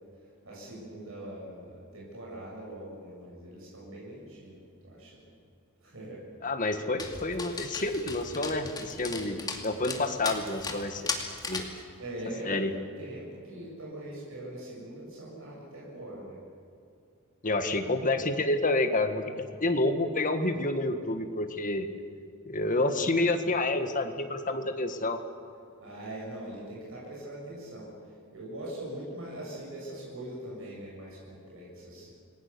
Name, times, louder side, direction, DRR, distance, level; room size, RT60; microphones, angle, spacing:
voice 1, 0.4-5.3 5.8-6.2 12.0-16.4 25.8-27.9 28.3-32.1, right 1 dB, 70° right, -5 dB, 7.3 m, -42 dB
voice 2, 6.4-11.0 11.5-11.7 12.4-12.7 17.4-19.2 19.5-21.9 22.5-25.2, left 2 dB, 40° left, 6 dB, 1.9 m, -28 dB
Dog, 7.0-11.8, left 3 dB, 20° left, 2.5 m, -37 dB
28.5 x 20.5 x 7.0 m, 2.5 s
head